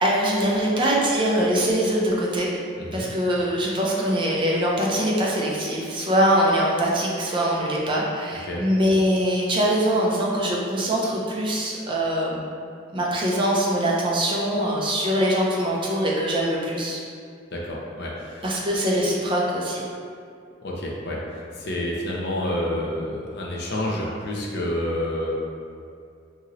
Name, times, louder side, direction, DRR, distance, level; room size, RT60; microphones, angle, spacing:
voice 1, 0.0-2.6 2.9-12.4 12.9-17.0 18.4-19.9, equal, 25° right, -4 dB, 0.4 m, -23 dB
voice 2, 17.5-18.5 20.6-25.3, left 1 dB, 55° left, -3 dB, 0.5 m, -29 dB
2.9 x 2.7 x 2.5 m, 2.4 s
head